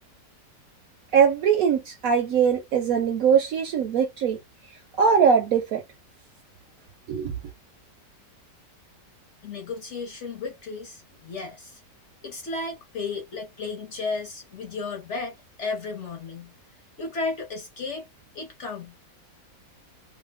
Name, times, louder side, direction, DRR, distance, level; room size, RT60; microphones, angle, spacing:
voice 1, 1.1-4.4 5.0-5.8 7.1-7.3, right 7 dB, 70° right, 0.8 m, -21 dB
voice 2, 9.4-11.8 12.2-16.5 17.0-18.1 18.3-19.0, left 4 dB, 55° left, 0.9 m, -34 dB
2.7 x 2.2 x 3.2 m
omnidirectional pair, 1.9 m